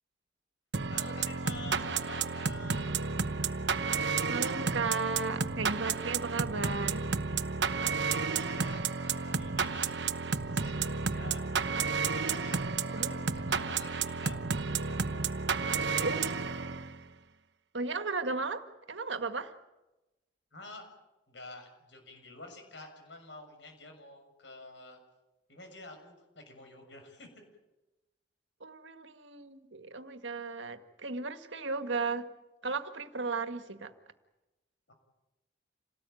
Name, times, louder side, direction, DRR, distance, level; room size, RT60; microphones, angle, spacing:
sound 1, 0.7-17.0, right 5 dB, 70° right, 1.0 m, -32 dB
voice 1, 0.9-2.9 7.7-11.4 11.9-14.4 14.7-16.3 20.5-20.9 21.3-25.0 25.5-27.3 34.9-35.0, left 2 dB, 75° left, 5 dB, 6.8 m, -49 dB
voice 2, 4.3-7.1 12.9-13.1 16.0-16.2 17.7-19.5 28.6-32.3 32.6-33.9, right 4 dB, 85° right, 8 dB, 1.8 m, -35 dB
27.5 x 18.5 x 9.2 m, 1.0 s
head